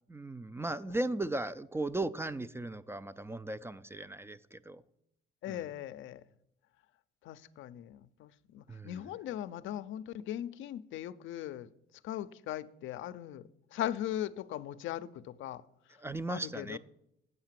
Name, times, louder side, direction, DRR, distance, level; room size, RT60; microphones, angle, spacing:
voice 1, 0.1-4.8 5.5-5.6 8.7-9.0 16.0-16.8, right 2 dB, 10° right, 0.3 m, -37 dB
voice 2, 5.4-6.2 7.2-11.7 12.0-13.4 13.7-15.6 16.3-16.8, left 12 dB, 80° left, 0.5 m, -39 dB
8.0 x 5.7 x 7.4 m
cardioid pair, 90°, 20 cm